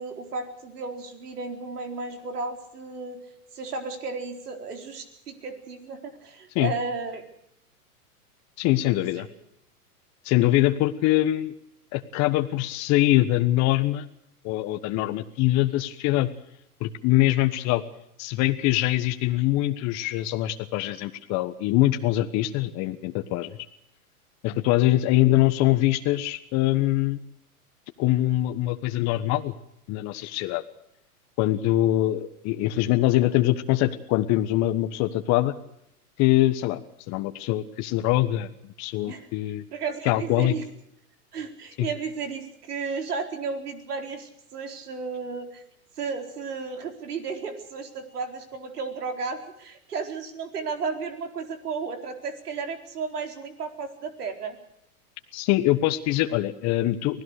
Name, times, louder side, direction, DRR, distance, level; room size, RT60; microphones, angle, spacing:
voice 1, 0.0-3.2 3.5-7.2 8.8-9.3 39.1-39.3 39.7-40.6 41.3-45.6 46.0-54.6, right 4 dB, 80° right, 6 dB, 4.4 m, -34 dB
voice 2, 8.6-9.3 10.2-11.5 11.9-14.0 14.4-16.3 16.8-17.8 18.2-23.6 24.4-27.2 28.0-29.5 29.9-30.6 31.4-35.5 36.2-36.8 37.1-38.5 38.8-39.6 40.0-40.5 41.8-41.9 55.3-57.2, left 15 dB, 35° left, 7 dB, 1.4 m, -23 dB
25.0 x 17.0 x 6.7 m, 0.77 s
hypercardioid pair, 120°, 45 cm